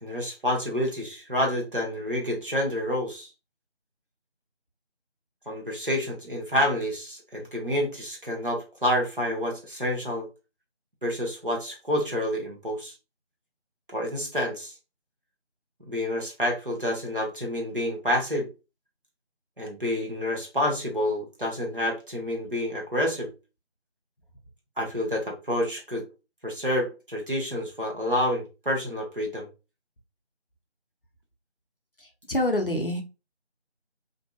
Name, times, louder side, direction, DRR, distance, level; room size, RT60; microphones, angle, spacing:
voice 1, 0.0-3.3 5.5-10.3 11.0-12.9 13.9-14.7 15.9-18.5 19.6-23.3 24.8-26.0 26.4-29.5, equal, 50° right, 0.8 m, -28 dB
voice 2, 32.3-33.0, left 1 dB, 55° left, 0.5 m, -25 dB
2.6 x 2.1 x 2.4 m
figure-of-eight pair, 175°, 34 cm